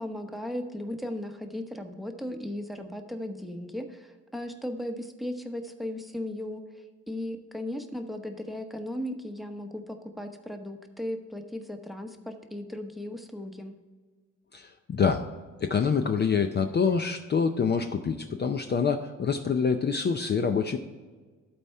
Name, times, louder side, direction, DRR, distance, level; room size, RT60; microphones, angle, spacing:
voice 1, 0.0-13.8, left 1 dB, ahead, 5 dB, 0.9 m, -36 dB
voice 2, 14.5-15.3 15.6-20.8, left 6 dB, 35° left, 6 dB, 0.5 m, -26 dB
12.0 x 4.2 x 4.5 m, 1.4 s
cardioid pair, 90°, 30 cm